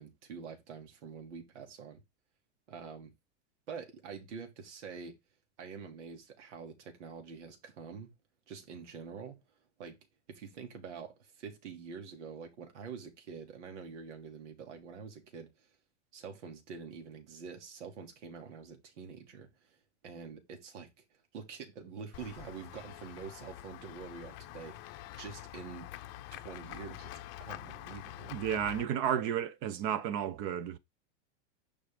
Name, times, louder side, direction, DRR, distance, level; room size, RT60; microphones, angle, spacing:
voice 1, 0.0-2.0 2.7-3.1 3.7-5.2 5.6-8.1 8.5-9.4 9.8-10.0 10.3-15.7 16.1-19.8 20.0-20.9 21.3-25.9 26.3-27.1 27.4-28.3, right 6 dB, 75° right, 3.2 m, -46 dB
Run / Walk footsteps / Bell, 22.1-28.8, left 14 dB, 35° left, 0.7 m, -46 dB
voice 2, 28.3-30.8, right 9 dB, 35° right, 0.9 m, -32 dB
11.5 x 5.3 x 3.8 m
supercardioid pair, 160°, 35 cm